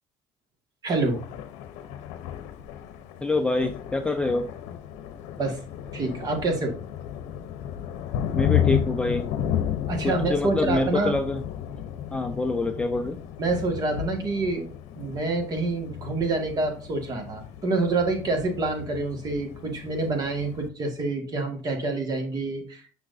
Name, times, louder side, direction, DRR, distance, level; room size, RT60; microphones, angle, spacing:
voice 1, 0.8-1.2 5.4-5.6 5.9-6.7 9.9-11.1 13.4-14.7 15.0-22.8, right 3 dB, 35° right, 4 dB, 1.8 m, -27 dB
Thunder, 0.9-20.7, left 10 dB, 70° left, 0.8 m, -33 dB
voice 2, 3.2-4.5 8.3-9.3 10.0-11.4 12.1-13.2, left 2 dB, 10° left, 4 dB, 0.5 m, -26 dB
6.2 x 5.7 x 2.6 m, 0.39 s
cardioid pair, 125°, 12 cm